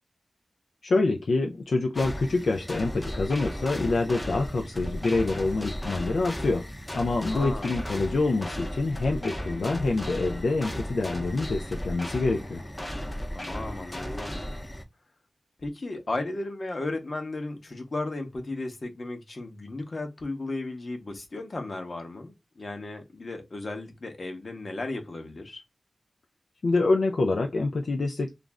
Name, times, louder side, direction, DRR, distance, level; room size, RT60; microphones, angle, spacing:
voice 1, 0.8-12.6 26.6-28.3, left 3 dB, 80° left, 0.3 m, -26 dB
sound 1, 1.9-14.8, equal, 20° left, 0.6 m, -35 dB
voice 2, 7.1-7.8 13.3-14.5 15.6-25.6, left 2 dB, 55° left, 0.8 m, -35 dB
2.5 x 2.0 x 3.3 m
cardioid pair, 60°, 0 cm